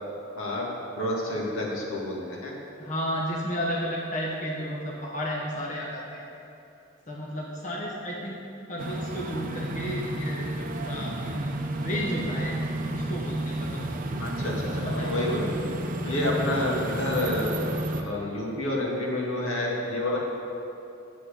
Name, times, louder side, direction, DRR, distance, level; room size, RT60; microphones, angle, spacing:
voice 1, 0.4-0.7 1.0-2.5 14.2-15.5 16.0-17.5 17.9-20.2, left 1 dB, 80° left, -3 dB, 2.1 m, -29 dB
voice 2, 2.8-6.2 7.1-8.4 8.7-11.3 11.8-12.6 12.9-14.2 14.7-15.1 16.0-16.3 16.6-16.7, equal, 35° left, -3 dB, 1.0 m, -32 dB
sound 1, 8.8-18.0, right 1 dB, 40° right, 0.7 m, -31 dB
8.6 x 7.5 x 6.7 m, 2.8 s
head